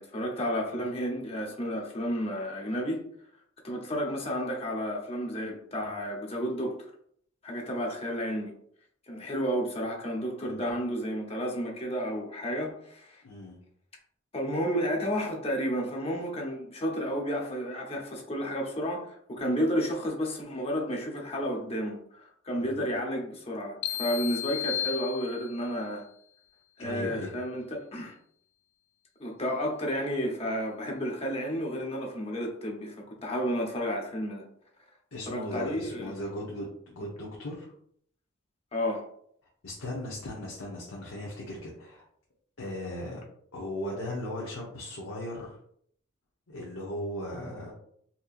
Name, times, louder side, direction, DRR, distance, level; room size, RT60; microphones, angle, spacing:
voice 1, 0.0-3.0 3.6-6.9 7.4-8.5 9.1-13.2 14.3-26.1 26.8-28.1 29.2-34.4 35.3-36.1 38.7-39.1, equal, 30° left, 0.7 m, -31 dB
voice 2, 13.2-13.6 22.5-22.8 26.8-27.3 35.1-37.7 39.6-42.0 42.6-43.2 43.5-45.5 46.5-47.7, left 1 dB, 85° left, 0.9 m, -37 dB
sound 1, 23.8-25.8, left 11 dB, 60° left, 0.4 m, -34 dB
4.3 x 2.7 x 2.4 m
head